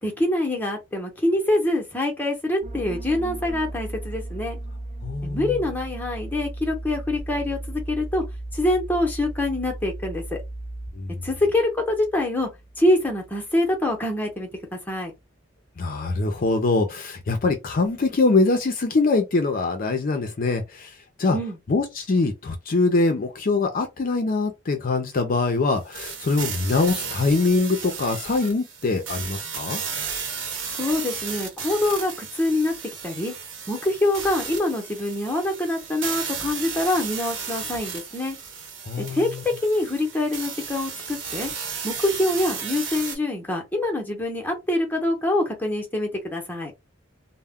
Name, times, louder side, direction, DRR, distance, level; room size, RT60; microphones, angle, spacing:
voice 1, 0.0-4.6 5.2-8.2 8.5-10.4 11.2-12.5 12.8-15.1 21.3-21.6 30.7-32.7 33.0-33.3 33.7-38.4 39.0-41.5 41.8-46.7, left 1 dB, 10° left, 0.8 m, -25 dB
sound 1, 2.6-14.0 14.3-14.6, right 1 dB, 35° right, 0.4 m, -36 dB
voice 2, 5.0-5.6 10.9-11.2 15.8-21.4 21.7-29.8 38.8-39.4, left 3 dB, 45° left, 0.5 m, -23 dB
sound 2, 25.9-43.2, right 6 dB, 85° right, 0.9 m, -34 dB
2.2 x 2.1 x 3.5 m
head